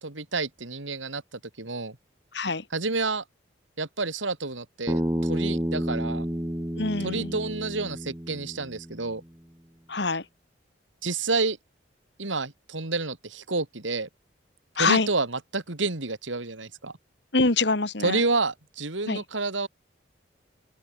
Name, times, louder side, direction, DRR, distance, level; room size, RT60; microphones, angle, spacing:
voice 1, 0.0-1.2 1.6-2.0 2.7-3.2 3.8-6.3 7.0-9.2 11.0-11.6 12.2-14.1 14.8-16.9 18.0-19.7, right 3 dB, 90° right, 2.7 m, -29 dB
voice 2, 2.3-2.6 6.8-7.4 9.9-10.2 14.8-15.1 17.3-18.2 19.1-19.2, left 3 dB, 65° left, 2.0 m, -24 dB
Bass guitar, 4.9-9.1, equal, 15° right, 1.4 m, -30 dB
open air
head